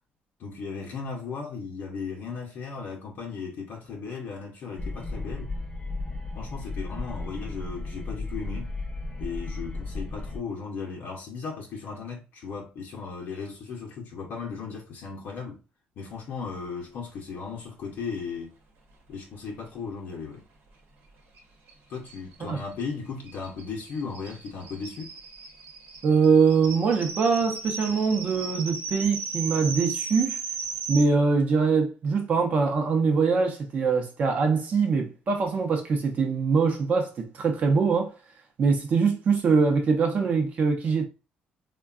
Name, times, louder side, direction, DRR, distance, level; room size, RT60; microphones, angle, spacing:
voice 1, 0.4-5.5 6.3-8.7 9.2-15.6 16.0-18.5 19.1-20.4 21.9-25.1, left 5 dB, 60° left, 0.7 m, -36 dB
sound 1, 4.8-10.4, left 2 dB, 15° left, 0.7 m, -34 dB
sound 2, 21.3-21.4 21.7-21.8 22.0-31.0, right 5 dB, 70° right, 0.9 m, -36 dB
voice 2, 26.0-30.4 30.9-38.1 38.6-41.1, right 5 dB, 45° right, 0.6 m, -23 dB
3.4 x 2.2 x 2.3 m
cardioid pair, 135°, 4 cm